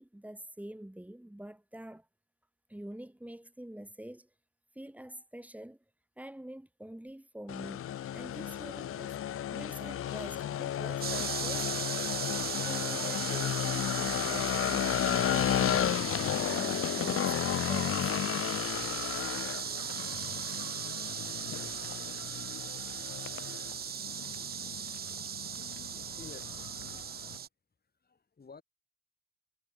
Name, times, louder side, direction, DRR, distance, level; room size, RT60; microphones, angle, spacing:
voice 1, 0.0-2.1 2.7-4.3 4.8-5.8 6.2-9.2 9.5-11.7 12.7-16.1 16.5-18.2, right 1 dB, 5° right, 1.8 m, -46 dB
sound 1, 7.5-27.4, left 11 dB, 45° left, 0.6 m, -34 dB
sound 2, 11.0-27.5, right 8 dB, 35° right, 0.4 m, -38 dB
sound 3, 19.2-24.8, left 10 dB, 60° left, 3.2 m, -62 dB
voice 2, 25.5-27.4 28.0-28.6, left 5 dB, 30° left, 5.1 m, -54 dB
cardioid pair, 90°, 30 cm